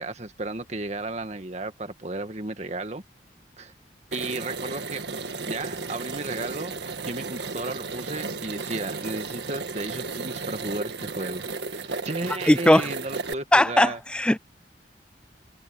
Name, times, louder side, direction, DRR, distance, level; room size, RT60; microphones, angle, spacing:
voice 1, 0.0-3.0 3.6-3.7 4.1-6.8 7.0-11.5 11.7-14.0, right 2 dB, 40° right, 1.8 m, -34 dB
sound 1, 4.1-13.3, right 4 dB, 80° right, 1.6 m, -34 dB
voice 2, 12.5-12.9 13.5-14.4, left 1 dB, 5° left, 0.3 m, -18 dB
head